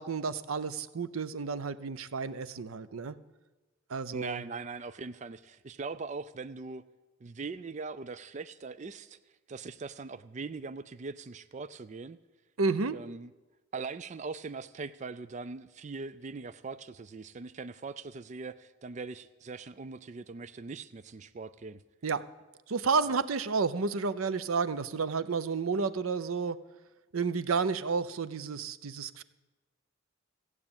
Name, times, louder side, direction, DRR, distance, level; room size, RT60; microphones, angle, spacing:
voice 1, 0.0-3.1 3.9-4.4 12.6-13.0 22.0-22.2 22.7-26.6 27.1-29.2, right 4 dB, 85° right, 15 dB, 0.6 m, -31 dB
voice 2, 4.1-6.8 7.2-9.2 9.5-12.2 12.9-13.3 13.7-21.8 23.1-23.2, right 4 dB, 35° right, 13 dB, 0.4 m, -41 dB
15.5 x 8.4 x 8.8 m, 1.2 s
head